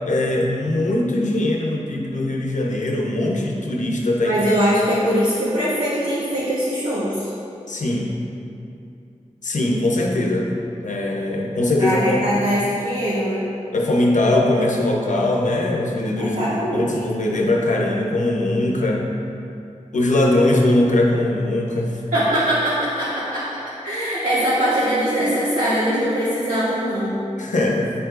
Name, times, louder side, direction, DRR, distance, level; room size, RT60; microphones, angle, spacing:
voice 1, 0.1-4.4 7.7-8.2 9.4-10.5 10.8-12.2 13.7-19.1 19.9-22.0 27.4-27.9, left 1 dB, 70° left, -1 dB, 0.8 m, -21 dB
voice 2, 4.2-7.3 11.8-13.4 16.2-16.9 22.1-23.5 23.8-27.2, equal, 85° right, -12 dB, 1.2 m, -21 dB
9.0 x 4.7 x 2.5 m, 2.7 s
wide cardioid pair, 60°, 13 cm